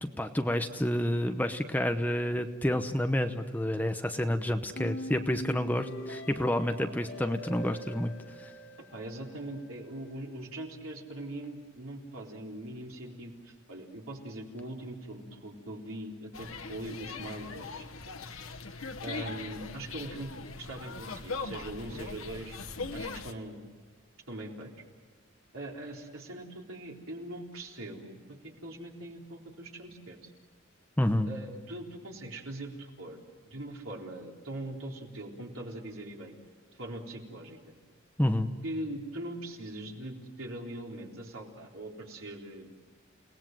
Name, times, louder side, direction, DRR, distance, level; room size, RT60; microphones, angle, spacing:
voice 1, 0.0-8.1 31.0-31.3 38.2-38.5, left 1 dB, 10° left, 7 dB, 0.9 m, -29 dB
sound 1, 4.7-9.8, equal, 65° left, 5.7 m, -43 dB
voice 2, 8.9-17.8 19.0-20.3 20.6-22.6 22.9-23.6 24.3-24.7 25.5-30.3 31.3-33.2 33.4-36.3 36.8-37.6 38.6-42.7, right 1 dB, 90° right, -1 dB, 3.9 m, -41 dB
sound 2, 16.3-23.3, left 4 dB, 85° left, 1.4 m, -40 dB
30.0 x 19.0 x 7.7 m, 1.5 s
head